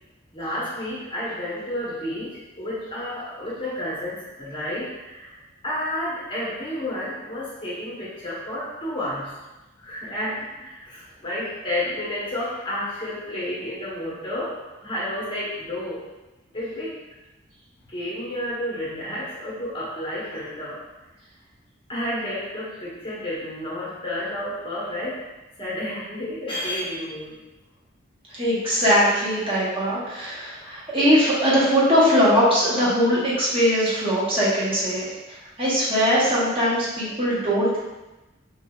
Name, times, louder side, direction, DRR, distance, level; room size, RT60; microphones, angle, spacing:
voice 1, 0.3-5.4 5.6-9.3 9.8-16.1 16.5-17.0 17.9-20.8 21.9-25.2 25.6-27.4, left 1 dB, 25° left, -7 dB, 1.1 m, -31 dB
voice 2, 28.3-35.1 35.6-37.8, equal, 30° right, -8 dB, 1.1 m, -20 dB
5.0 x 2.6 x 2.3 m, 1.0 s
head